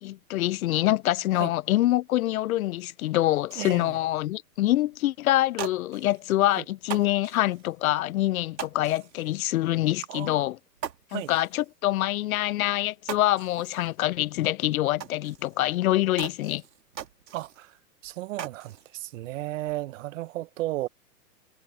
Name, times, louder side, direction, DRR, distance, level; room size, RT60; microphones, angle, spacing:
voice 1, 0.0-10.6 11.1-16.6, left 15 dB, 60° left, 0.6 m, -25 dB
sound 1, 3.5-3.9 4.5-4.6 4.9-5.0 5.4-6.4 6.8-7.7 8.6-9.4 9.8-9.9 10.2-10.3 10.8-11.7 12.5-12.6 12.8-13.9 14.3-14.4 15.0-15.7 16.2-17.7 18.0-18.9 19.3-19.8, right 9 dB, 80° right, 2.7 m, -41 dB
voice 2, 3.6-4.0 6.6-6.7 10.1-10.4 11.1-11.3 17.3-17.8 18.0-20.9, right 16 dB, 50° right, 1.2 m, -34 dB
hypercardioid pair, 130°, 49 cm